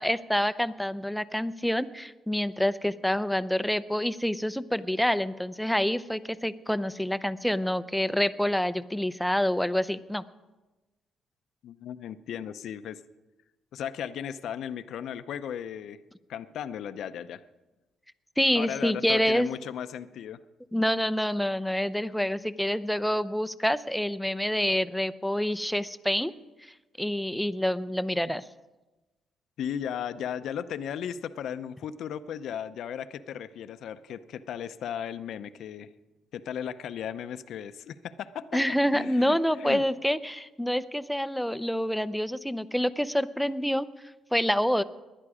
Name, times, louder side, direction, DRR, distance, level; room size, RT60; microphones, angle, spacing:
voice 1, 0.0-10.2 18.4-19.5 20.7-26.3 27.0-28.4 38.5-43.9 44.3-44.8, equal, ahead, 12 dB, 0.6 m, -27 dB
voice 2, 11.6-13.0 13.7-16.0 16.3-17.4 18.5-20.4 29.6-35.9 36.3-38.6 38.9-39.8, left 9 dB, 75° left, 12 dB, 0.6 m, -36 dB
20.5 x 11.0 x 5.0 m, 1.1 s
cardioid pair, 90°, 0 cm